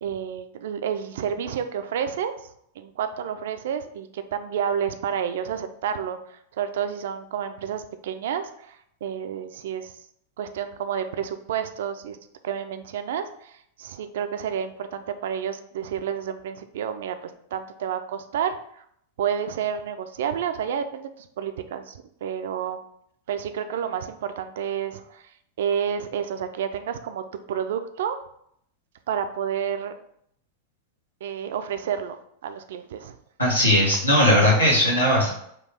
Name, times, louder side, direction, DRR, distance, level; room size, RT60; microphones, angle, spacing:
voice 1, 0.0-2.3 2.8-9.9 10.4-12.2 12.4-18.8 19.2-22.8 23.3-25.3 25.6-27.2 27.5-28.2 29.1-29.9 31.2-33.1, right 8 dB, 60° right, 9 dB, 0.3 m, -30 dB
voice 2, 33.4-35.3, left 1 dB, 80° left, -4 dB, 1.2 m, -18 dB
4.3 x 2.3 x 3.3 m, 0.71 s
figure-of-eight pair, 90°, 0 cm